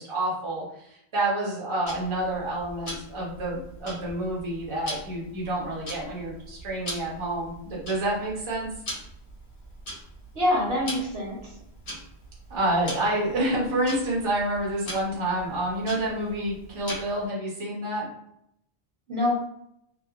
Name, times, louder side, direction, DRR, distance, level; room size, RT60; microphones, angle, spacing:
voice 1, 0.0-8.7 12.5-18.1, right 1 dB, 30° right, -4 dB, 0.7 m, -28 dB
Tick-tock, 1.9-17.3, equal, 80° left, 1.3 m, -41 dB
voice 2, 10.3-11.5 19.1-19.3, left 1 dB, 70° right, -3 dB, 1.1 m, -25 dB
2.8 x 2.2 x 2.4 m, 0.76 s
omnidirectional pair, 1.1 m